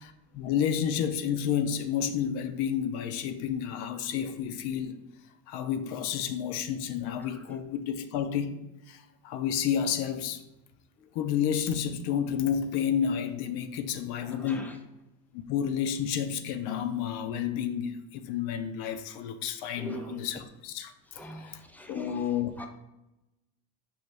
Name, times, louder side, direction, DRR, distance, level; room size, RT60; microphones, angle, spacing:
voice 1, 0.0-4.9 5.5-8.6 8.9-10.4 11.1-14.7 15.3-20.9 21.2-21.6 21.9-22.5, left 8 dB, 65° left, 0.5 m, -30 dB
voice 2, 14.2-14.7 19.8-20.3 21.2-22.3 22.6-22.7, equal, 5° left, 0.3 m, -41 dB
5.4 x 2.5 x 3.2 m
supercardioid pair, 95°, 42 cm